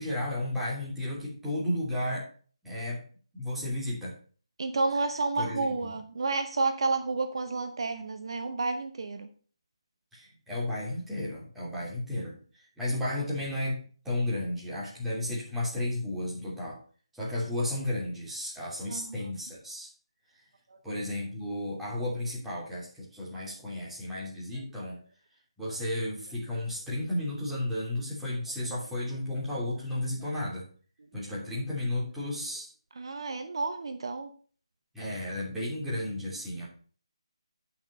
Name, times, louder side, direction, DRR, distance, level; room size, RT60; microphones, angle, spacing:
voice 1, 0.0-2.3 2.6-3.0 3.3-4.1 5.4-5.7 10.1-12.4 12.8-13.8 14.0-16.8 17.1-19.9 20.8-25.0 25.6-30.6 31.1-32.7 34.9-36.7, left 1 dB, 5° right, -7 dB, 3.1 m, -33 dB
voice 2, 4.6-9.3 18.9-19.1 33.0-34.3, right 3 dB, 60° right, 8 dB, 0.9 m, -30 dB
8.9 x 5.9 x 5.3 m, 0.41 s
figure-of-eight pair, 160°, 3 cm